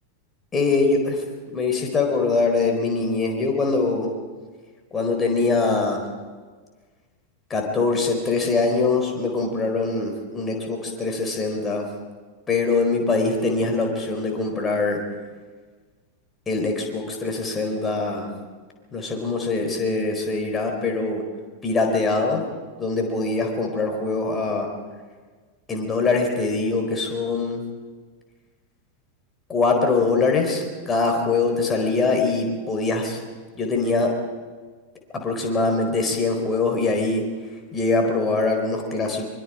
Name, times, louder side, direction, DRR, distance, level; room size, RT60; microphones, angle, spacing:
voice 1, 0.5-4.1 4.9-6.0 7.5-11.8 12.5-15.0 16.5-18.3 18.9-21.2 21.6-22.4 22.8-24.7 25.7-27.6 29.5-33.2 33.6-34.1 35.1-37.2 37.7-39.2, left 3 dB, 20° left, 2 dB, 4.3 m, -23 dB
24.0 x 23.0 x 5.0 m, 1.5 s
figure-of-eight pair, 90°, 0 cm